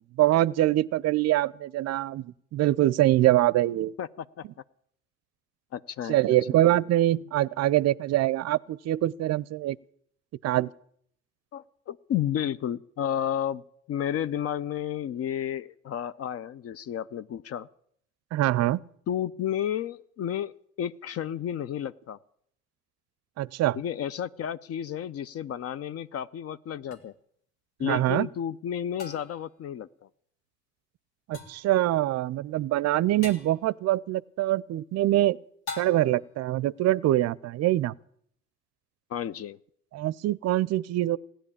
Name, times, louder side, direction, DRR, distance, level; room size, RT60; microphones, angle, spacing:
voice 1, 0.2-3.9 6.1-9.8 10.4-10.7 18.3-18.8 23.4-23.8 27.8-28.3 31.3-35.4 35.8-37.9 39.9-41.2, right 14 dB, 50° right, 0.5 m, -24 dB
voice 2, 4.0-4.4 5.7-6.4 11.5-13.6 13.9-17.7 19.1-20.5 20.8-22.2 23.8-27.1 27.8-30.1 39.1-39.6, left 10 dB, 45° left, 0.5 m, -32 dB
sound 1, 26.9-27.0 29.0-29.5 31.3-31.7 33.2-33.6 35.7-36.3, left 4 dB, 90° left, 1.7 m, -40 dB
16.5 x 10.0 x 8.5 m
hypercardioid pair, 55°, 34 cm